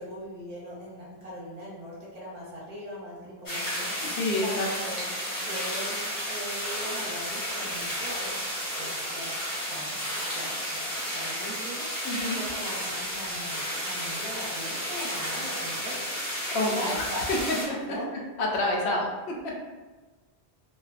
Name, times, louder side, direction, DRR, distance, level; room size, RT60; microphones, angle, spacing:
voice 1, 0.0-3.9 4.4-5.1 5.4-6.0 6.3-12.1 12.3-16.0 16.8-17.3 17.8-18.1, equal, 45° right, -6 dB, 0.7 m, -40 dB
sound 1, 3.5-17.7, equal, 20° left, 0.7 m, -32 dB
voice 2, 4.0-4.7 12.0-12.4 16.5-17.4 17.7-18.0 18.4-19.5, left 2 dB, 85° left, -1 dB, 0.8 m, -28 dB
2.4 x 2.2 x 2.4 m, 1.2 s
omnidirectional pair, 1.1 m